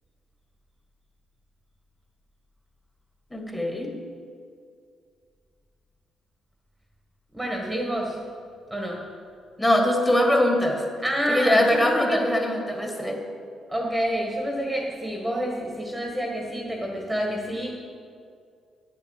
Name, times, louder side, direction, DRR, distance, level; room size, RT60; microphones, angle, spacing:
voice 1, 3.3-4.0 9.6-10.8 11.3-13.2, left 1 dB, 15° left, 1 dB, 2.2 m, -22 dB
voice 2, 7.3-8.2 8.7-9.1 11.0-12.2 13.7-17.7, equal, 10° right, -1 dB, 1.7 m, -28 dB
9.9 x 7.5 x 7.8 m, 2.3 s
cardioid pair, 90°, 0 cm